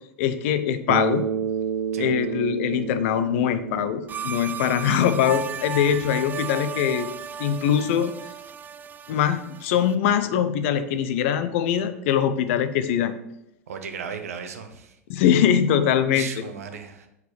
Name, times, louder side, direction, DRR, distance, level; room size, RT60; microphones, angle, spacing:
voice 1, 0.2-1.3 2.0-7.1 7.4-8.1 9.1-13.1 15.1-16.3, left 9 dB, 55° left, 11 dB, 0.7 m, -22 dB
Bass guitar, 0.9-5.3, right 8 dB, 45° right, 0.8 m, -30 dB
sound 1, 4.1-9.9, right 7 dB, 20° right, 0.4 m, -35 dB
voice 2, 13.7-15.0 16.0-17.1, right 6 dB, 70° right, 7 dB, 1.0 m, -36 dB
4.9 x 4.8 x 6.2 m, 0.84 s
figure-of-eight pair, 85°, 8 cm